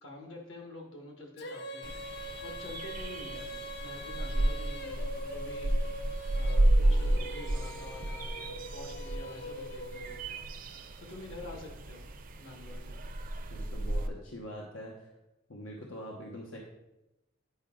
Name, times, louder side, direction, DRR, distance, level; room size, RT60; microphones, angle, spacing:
voice 1, 0.0-5.7 6.3-10.4 11.0-12.1 12.4-13.0, left 2 dB, 70° left, 1 dB, 1.5 m, -47 dB
Female singing, 1.4-10.5, equal, 55° left, 0.6 m, -42 dB
sound 1, 1.8-14.1, right 1 dB, 45° right, 0.5 m, -32 dB
sound 2, 6.8-9.2, left 1 dB, 15° left, 0.5 m, -56 dB
voice 2, 13.5-15.1 15.5-16.6, equal, 90° left, -1 dB, 1.0 m, -43 dB
9.4 x 4.9 x 3.8 m, 0.95 s
head